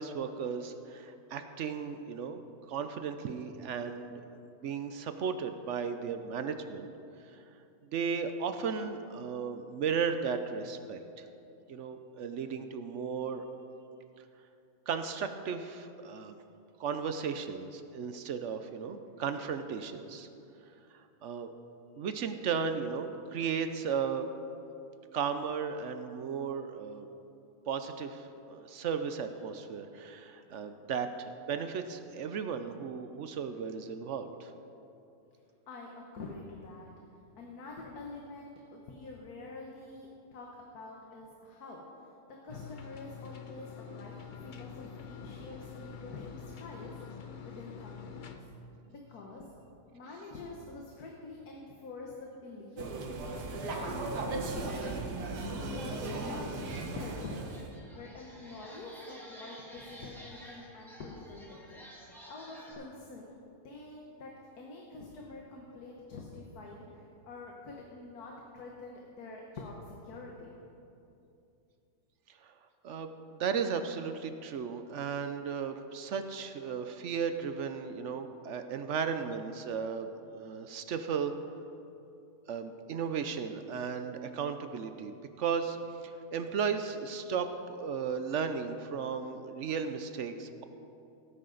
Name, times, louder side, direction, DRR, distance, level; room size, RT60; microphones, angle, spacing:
voice 1, 0.0-6.9 7.3-7.4 7.9-11.3 11.7-13.5 14.9-16.4 16.8-20.3 21.2-21.5 22.0-24.3 25.1-27.1 27.7-34.5 72.3-72.5 72.8-81.3 82.5-85.8 86.0-90.6, right 6 dB, 60° right, 8 dB, 0.8 m, -35 dB
voice 2, 35.7-36.9 37.4-40.5 40.7-41.8 42.4-48.4 48.9-49.4 49.9-53.4 53.8-57.6 57.9-61.8 62.3-70.6, left 3 dB, 70° left, -1 dB, 1.7 m, -46 dB
sound 1, 42.5-48.4, left 7 dB, 50° left, 0.6 m, -46 dB
sound 2, 52.8-57.7, right 2 dB, 90° right, 1.8 m, -37 dB
sound 3, 56.9-57.0 57.4-62.7, equal, ahead, 2.5 m, -52 dB
18.0 x 9.9 x 3.9 m, 2.7 s
omnidirectional pair, 1.7 m